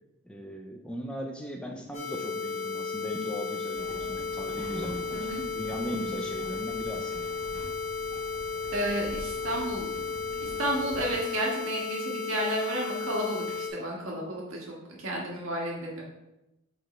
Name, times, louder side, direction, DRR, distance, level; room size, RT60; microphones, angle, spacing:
voice 1, 0.2-7.3, equal, 5° left, 1 dB, 0.4 m, -38 dB
sound 1, 1.9-13.7, left 4 dB, 40° left, 1.1 m, -34 dB
sound 2, 3.7-11.2, equal, 45° right, 2.0 m, -45 dB
voice 2, 8.7-9.9 10.4-16.0, right 1 dB, 80° right, -3 dB, 1.6 m, -32 dB
5.4 x 4.0 x 4.3 m, 0.93 s
head